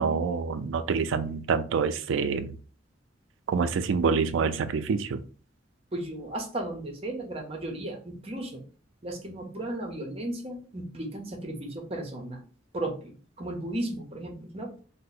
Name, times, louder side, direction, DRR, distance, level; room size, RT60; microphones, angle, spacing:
voice 1, 0.0-2.6 3.5-5.2, right 5 dB, 75° right, 10 dB, 0.3 m, -26 dB
voice 2, 5.9-8.6 9.0-12.4 12.7-14.7, right 1 dB, 30° right, 2 dB, 0.7 m, -35 dB
2.7 x 2.0 x 3.9 m, 0.41 s
head